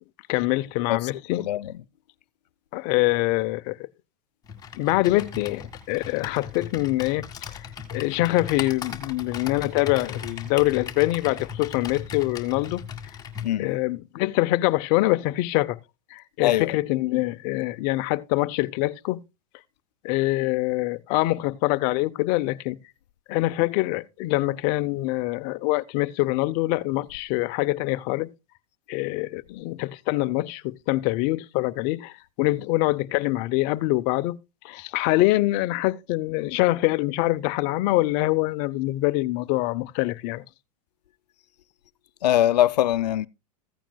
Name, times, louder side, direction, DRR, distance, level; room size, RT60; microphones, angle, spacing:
voice 1, 0.3-1.4 2.7-3.8 4.7-7.6 7.9-12.8 13.6-15.8 16.1-19.2 20.0-22.8 23.3-28.3 28.9-34.4 34.6-40.4, left 19 dB, 40° left, 0.6 m, -24 dB
voice 2, 1.4-1.7 13.4-13.7 16.4-16.8 42.2-43.3, left 12 dB, 85° left, 0.6 m, -22 dB
Computer keyboard, 4.5-13.5, left 7 dB, 20° left, 1.8 m, -37 dB
15.5 x 9.0 x 2.3 m
hypercardioid pair, 135°, 21 cm